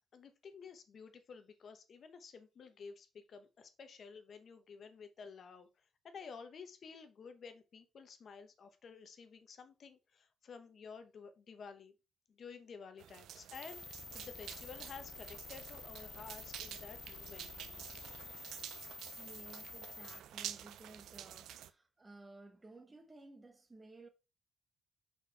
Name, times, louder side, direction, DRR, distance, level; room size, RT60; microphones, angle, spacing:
voice 1, 0.1-5.7 6.0-11.9 12.3-17.5, left 5 dB, 55° left, 1.0 m, -52 dB
sound 1, 13.0-21.7, right 11 dB, 80° right, 0.5 m, -50 dB
sound 2, 13.5-20.2, left 4 dB, 40° left, 0.4 m, -50 dB
voice 2, 19.2-24.1, right 2 dB, 20° right, 1.2 m, -56 dB
5.4 x 4.3 x 4.1 m
cardioid pair, 90°, 0 cm